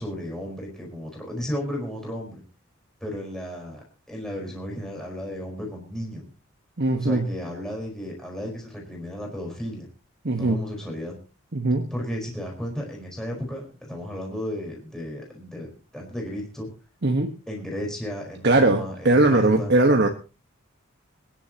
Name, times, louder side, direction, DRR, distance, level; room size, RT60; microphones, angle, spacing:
voice 1, 0.0-2.4 3.0-6.3 6.9-9.9 10.3-11.2 11.9-16.7 17.5-19.7, equal, 5° left, -1 dB, 4.5 m, -34 dB
voice 2, 6.8-7.3 10.2-10.6 11.5-11.9 17.0-17.4 18.4-20.1, right 2 dB, 55° right, 3 dB, 1.3 m, -20 dB
25.5 x 10.5 x 2.9 m, 0.33 s
head